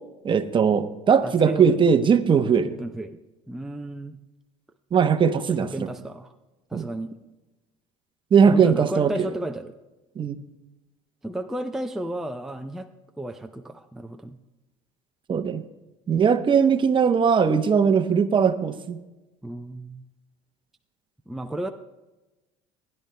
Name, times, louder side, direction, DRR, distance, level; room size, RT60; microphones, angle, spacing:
voice 1, 0.2-2.8 4.9-5.9 6.7-6.8 8.3-9.1 10.2-10.4 15.3-15.6 16.1-19.0, right 6 dB, 30° right, 10 dB, 0.8 m, -20 dB
voice 2, 1.2-1.8 2.6-3.2 3.5-4.2 5.4-6.3 6.7-7.1 8.4-9.7 11.2-12.9 13.2-14.4 19.4-20.0 21.3-21.7, right 1 dB, ahead, 5 dB, 0.5 m, -33 dB
19.0 x 10.5 x 2.2 m, 1.1 s
supercardioid pair, 95°, 16 cm